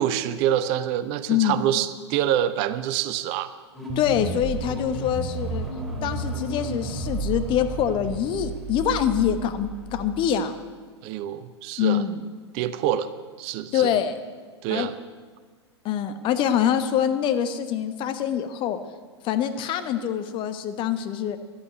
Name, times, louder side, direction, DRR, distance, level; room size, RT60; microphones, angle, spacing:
voice 1, 0.0-3.5 11.0-12.0 12.5-13.1 13.4-13.9 14.6-15.0, right 11 dB, 40° right, 13 dB, 0.7 m, -26 dB
voice 2, 1.3-1.6 4.0-5.7 6.0-10.6 11.8-12.2 13.7-14.2 14.7-14.9 15.8-18.8 19.2-21.4, left 9 dB, 35° left, 10 dB, 1.1 m, -25 dB
sound 1, 3.7-10.4, right 2 dB, ahead, 2.6 m, -32 dB
11.5 x 8.6 x 9.5 m, 1.5 s
hypercardioid pair, 105°, 15 cm